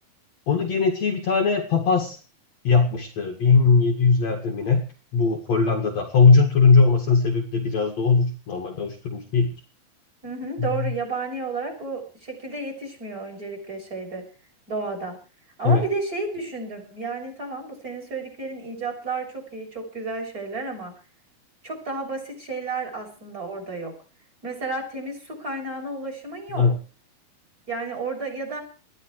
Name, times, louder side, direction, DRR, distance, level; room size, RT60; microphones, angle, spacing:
voice 1, 0.5-2.2 2.6-4.8 5.1-9.5 10.6-10.9 15.6-15.8 26.5-26.8, left 4 dB, 50° left, 2 dB, 2.8 m, -20 dB
voice 2, 10.2-14.2 14.7-15.2 15.6-20.9 21.6-23.9 24.4-26.7 27.7-28.6, right 3 dB, 20° right, 5 dB, 7.2 m, -32 dB
21.0 x 14.0 x 4.8 m, 0.36 s
omnidirectional pair, 4.4 m